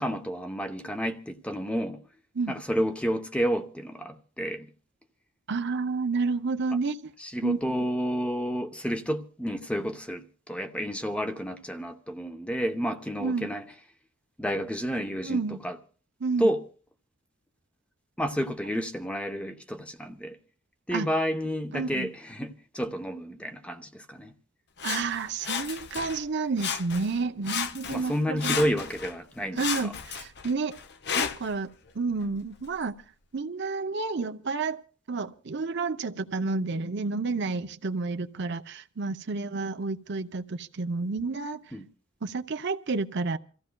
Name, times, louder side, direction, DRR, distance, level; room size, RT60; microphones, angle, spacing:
voice 1, 0.0-2.0 2.5-4.7 7.2-13.6 14.4-15.8 16.4-16.6 18.2-20.4 20.9-24.3 27.9-29.9 41.7-41.9, equal, 5° left, 0.7 m, -30 dB
voice 2, 5.5-7.0 7.4-7.6 13.2-13.5 15.2-15.6 16.2-16.5 20.9-21.1 21.7-22.1 24.8-28.6 29.6-30.8 31.2-31.7 32.0-32.9 33.3-34.8 35.1-41.6 42.2-43.4, right 4 dB, 55° right, 0.7 m, -30 dB
Sawing, 24.8-26.3 26.6-27.2 27.4-29.2 29.6-31.6 32.2-32.3, left 7 dB, 55° left, 0.8 m, -33 dB
28.0 x 15.0 x 2.3 m
head